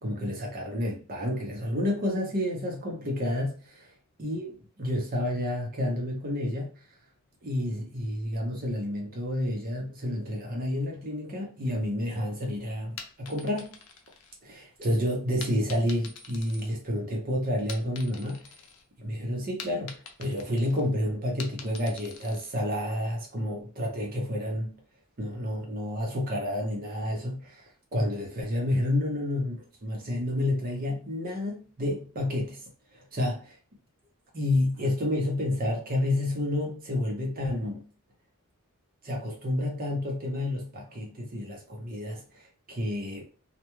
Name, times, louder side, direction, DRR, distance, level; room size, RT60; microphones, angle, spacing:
voice 1, 0.0-3.9 4.2-6.7 7.4-13.7 14.4-18.4 19.0-24.7 25.2-32.6 32.9-33.6 34.3-37.9 39.0-43.2, left 1 dB, 40° right, 0.7 m, -30 dB
sound 1, 12.8-14.8 15.4-17.2 17.5-18.8 19.2-22.6, left 6 dB, 85° left, 0.5 m, -45 dB
2.2 x 2.1 x 2.9 m
head